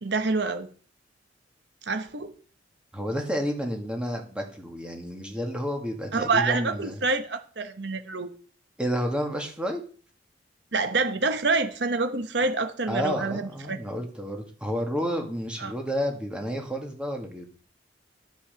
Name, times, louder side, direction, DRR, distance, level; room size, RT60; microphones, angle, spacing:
voice 1, 0.0-0.7 1.9-2.3 6.1-8.3 10.7-13.8 15.6-15.7, right 3 dB, 60° right, 1.1 m, -27 dB
voice 2, 2.9-7.0 8.8-9.8 12.9-17.5, equal, 5° right, 2.1 m, -30 dB
11.5 x 5.8 x 7.0 m
head